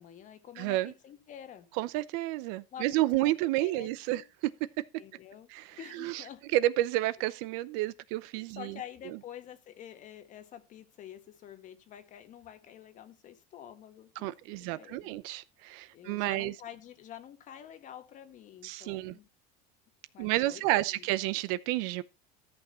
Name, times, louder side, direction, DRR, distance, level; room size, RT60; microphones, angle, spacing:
voice 1, 0.0-1.7 2.7-3.3 3.6-4.3 5.0-5.5 5.8-6.5 8.4-15.2 15.9-19.3 20.1-21.1, left 10 dB, 40° left, 1.5 m, -48 dB
voice 2, 0.6-0.9 1.7-4.5 5.5-6.2 6.5-8.8 14.2-16.5 18.6-19.2 20.2-22.0, right 16 dB, 70° right, 0.7 m, -30 dB
13.5 x 6.1 x 4.3 m
supercardioid pair, 125°, 19 cm